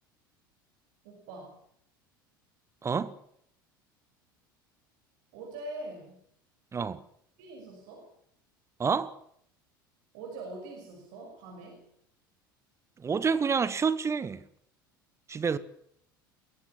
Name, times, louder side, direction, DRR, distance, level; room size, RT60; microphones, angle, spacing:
voice 1, 1.0-1.6 5.3-6.2 7.4-8.1 10.1-11.9, right 2 dB, 60° right, 6.0 m, -43 dB
voice 2, 2.8-3.1 6.7-7.0 8.8-9.2 13.0-14.4 15.3-15.6, right 5 dB, 25° right, 1.2 m, -28 dB
22.5 x 16.5 x 7.3 m
figure-of-eight pair, 70°, 11 cm